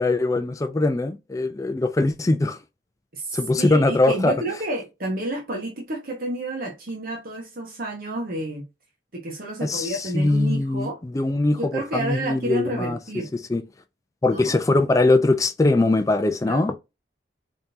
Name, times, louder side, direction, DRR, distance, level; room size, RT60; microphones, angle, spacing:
voice 1, 0.0-2.6 3.3-4.3 9.6-13.0 13.5-13.6 14.2-16.7, left 2 dB, 20° left, 0.3 m, -21 dB
voice 2, 3.1-8.7 9.1-11.0 11.6-13.3 14.3-14.6 16.5-16.8, right 1 dB, 50° right, 1.0 m, -30 dB
4.1 x 3.6 x 2.5 m
head